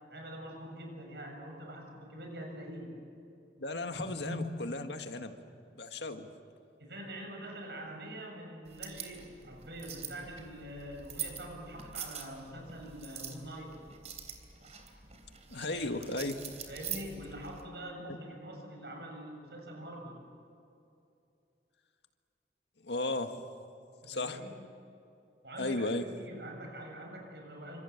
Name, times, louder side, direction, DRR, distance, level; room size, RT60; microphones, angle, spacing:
voice 1, 0.1-3.0 4.2-4.5 6.8-13.8 16.7-20.2 24.0-24.5 25.4-25.9 26.2-27.8, equal, 70° right, 2 dB, 7.4 m, -44 dB
voice 2, 3.6-5.4 5.7-6.3 15.5-16.4 18.0-18.2 22.8-23.4 24.1-24.4 25.6-26.1, left 2 dB, 80° left, 6 dB, 1.9 m, -35 dB
sound 1, 8.7-17.6, right 8 dB, 40° right, 3.4 m, -44 dB
28.5 x 26.0 x 7.3 m, 2.6 s
head